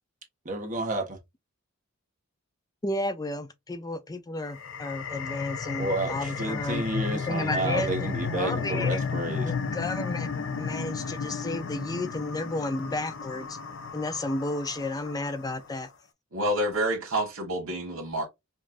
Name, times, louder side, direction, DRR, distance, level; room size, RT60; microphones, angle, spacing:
voice 1, 0.4-1.2 5.8-9.5, right 2 dB, 40° right, 1.3 m, -31 dB
voice 2, 2.8-9.0 9.4-13.6 13.9-15.9, left 2 dB, 20° left, 0.4 m, -32 dB
sound 1, 4.4-15.6, left 5 dB, 65° left, 0.7 m, -33 dB
voice 3, 16.3-18.2, right 1 dB, 90° right, 1.5 m, -28 dB
5.2 x 2.4 x 2.4 m
head